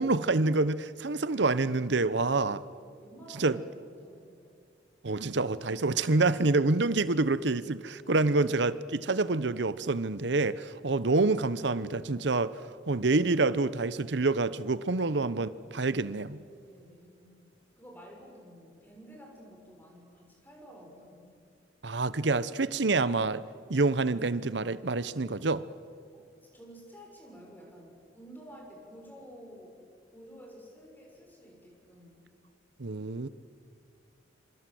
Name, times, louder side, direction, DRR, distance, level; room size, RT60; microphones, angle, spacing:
voice 1, 0.0-2.6 3.4-3.6 5.0-16.4 21.8-23.4 23.7-25.6 32.8-33.3, right 3 dB, 65° right, 0.9 m, -27 dB
voice 2, 2.8-4.4 16.6-17.4 17.8-21.3 26.1-29.8 30.1-32.3, equal, 10° left, 6.6 m, -51 dB
26.5 x 26.5 x 7.8 m
head